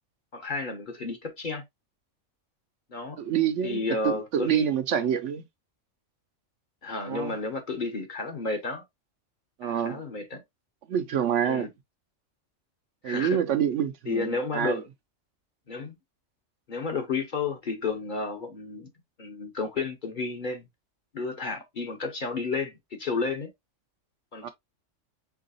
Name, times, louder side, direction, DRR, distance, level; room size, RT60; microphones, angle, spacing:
voice 1, 0.3-1.6 2.9-3.2 3.6-4.7 6.8-8.8 9.6-10.4 11.4-11.7 13.0-13.4 14.1-14.8 15.7-16.0 16.7-18.9 19.2-20.6 21.1-23.5 24.3-24.5, left 4 dB, 45° left, 0.8 m, -32 dB
voice 2, 3.2-5.4 7.1-7.3 9.6-10.0 10.9-11.7 13.0-14.8 24.4-24.5, right 9 dB, 70° right, 0.9 m, -27 dB
4.6 x 3.8 x 2.5 m
omnidirectional pair, 1.3 m